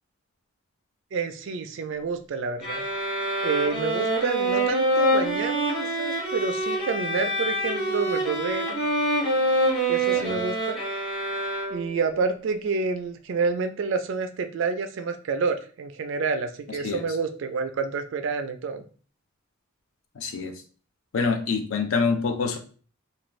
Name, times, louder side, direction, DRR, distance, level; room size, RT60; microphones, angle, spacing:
voice 1, 1.1-2.8 3.4-8.8 9.9-10.8 11.7-18.8, right 4 dB, 60° right, 8 dB, 0.3 m, -28 dB
sound 1, 2.6-12.1, right 1 dB, 25° left, 1.0 m, -26 dB
voice 2, 20.2-20.6 21.1-22.6, left 4 dB, 70° left, 6 dB, 0.4 m, -26 dB
2.4 x 2.3 x 3.0 m, 0.41 s
head